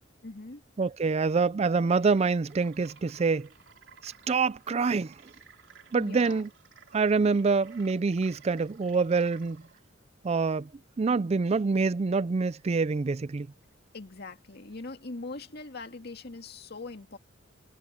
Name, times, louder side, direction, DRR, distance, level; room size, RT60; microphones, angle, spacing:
voice 1, 0.2-0.6 6.0-6.4 13.9-17.2, left 3 dB, 55° left, 2.0 m, -41 dB
voice 2, 0.8-3.5 4.0-5.2 5.9-6.5 6.9-9.6 10.2-10.7 11.0-13.5, right 4 dB, 30° right, 0.4 m, -26 dB
sound 1, 1.9-9.8, right 6 dB, 65° right, 4.0 m, -56 dB
head